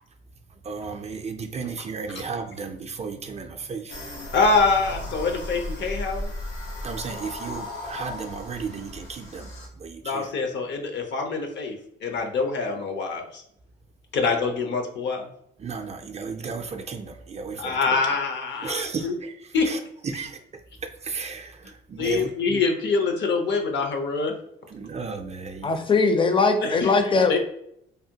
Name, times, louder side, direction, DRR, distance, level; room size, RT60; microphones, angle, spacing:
voice 1, 0.6-4.0 6.8-10.3 15.6-17.8 18.6-20.4 20.8-22.6 24.7-25.8, right 5 dB, 35° right, 5 dB, 0.4 m, -34 dB
sound 1, 3.9-9.7, left 1 dB, 80° left, 1.1 m, -36 dB
voice 2, 4.3-6.3 10.0-11.8 12.0-13.4 14.1-15.3 17.6-19.1 19.5-19.7 22.0-24.3 26.6-26.9 27.3-27.4, left 4 dB, 65° left, 4 dB, 0.7 m, -25 dB
voice 3, 25.6-27.4, left 4 dB, 25° left, 8 dB, 0.5 m, -20 dB
3.4 x 2.1 x 2.8 m, 0.74 s
cardioid pair, 90°, 20 cm